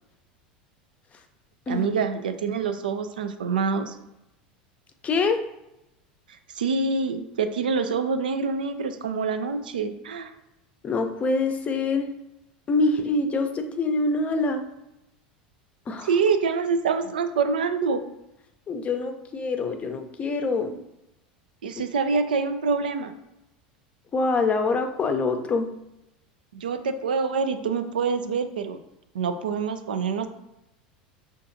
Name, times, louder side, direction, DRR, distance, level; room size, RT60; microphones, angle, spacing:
voice 1, 1.7-4.0 6.6-10.3 16.0-18.0 21.6-23.1 26.5-28.8 29.1-30.3, right 5 dB, 85° right, 8 dB, 0.4 m, -26 dB
voice 2, 5.0-5.4 10.8-12.1 12.7-14.6 15.9-16.1 18.7-20.8 24.1-25.7, left 3 dB, 30° left, 7 dB, 0.5 m, -25 dB
5.4 x 2.5 x 2.6 m, 0.90 s
hypercardioid pair, 90°, 5 cm